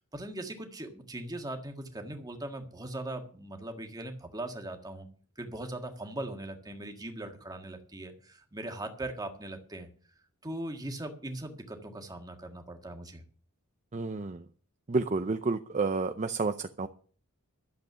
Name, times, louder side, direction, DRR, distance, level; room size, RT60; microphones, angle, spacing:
voice 1, 0.1-5.1 5.4-9.9 10.4-13.2, right 1 dB, 15° right, 4 dB, 1.6 m, -40 dB
voice 2, 13.9-14.4 14.9-16.9, right 3 dB, 30° right, 9 dB, 0.5 m, -30 dB
12.0 x 7.8 x 6.7 m, 0.43 s
head